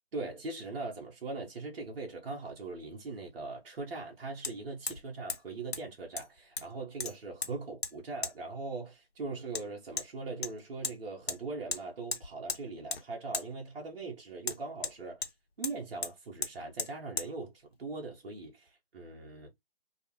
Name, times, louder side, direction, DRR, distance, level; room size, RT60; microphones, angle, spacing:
voice 1, 0.1-15.2 15.6-17.5 17.8-19.5, right 3 dB, 65° right, 1.0 m, -40 dB
Hammer, 2.5-2.6 4.4-4.5 4.9-5.0 5.3-5.4 5.7-5.8 6.2-6.7 7.0-7.5 7.8-7.9 8.2-8.3 9.5-9.6 10.0-10.1 10.4-11.0 11.3-11.4 11.7-11.8 12.1-12.6 12.9-13.0 13.3-13.5 14.4-15.3 15.6-15.8 16.0-16.1 16.4-16.5 16.8-16.9 17.2-17.3, left 5 dB, 75° left, 0.7 m, -36 dB
2.4 x 2.4 x 2.9 m
figure-of-eight pair, 135°, 31 cm